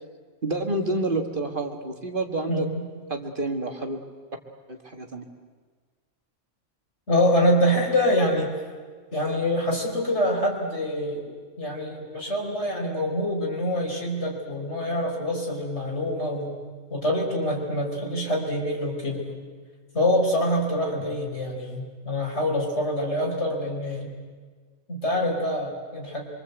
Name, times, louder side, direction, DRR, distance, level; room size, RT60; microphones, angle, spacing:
voice 1, 0.4-2.7 3.1-4.0 4.7-5.3, right 2 dB, 40° right, 4 dB, 1.9 m, -29 dB
voice 2, 2.5-2.9 7.1-8.5 9.1-11.2 11.6-16.6 16.9-19.2 19.9-24.1 24.9-26.2, left 1 dB, 60° left, -1 dB, 5.0 m, -25 dB
26.0 x 24.0 x 8.1 m, 1.5 s
omnidirectional pair, 1.3 m